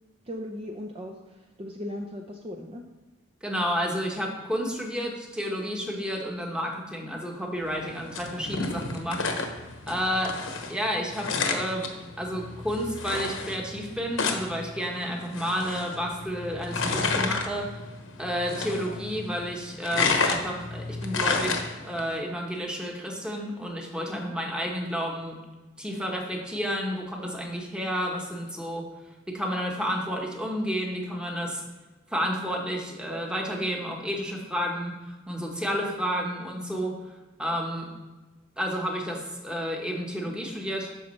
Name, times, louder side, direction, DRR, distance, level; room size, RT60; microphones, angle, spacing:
voice 1, 0.3-2.8 24.1-24.3, left 1 dB, 30° right, 0 dB, 0.6 m, -38 dB
voice 2, 3.4-9.2 9.9-10.3 10.7-11.9 12.2-17.7 18.2-25.4 25.8-28.9 29.3-31.6 32.1-37.0 37.4-37.9 38.6-40.9, equal, 5° right, 0 dB, 1.2 m, -31 dB
sound 1, 7.7-22.1, left 4 dB, 80° left, 1.0 m, -31 dB
13.0 x 5.2 x 3.2 m, 1.2 s
head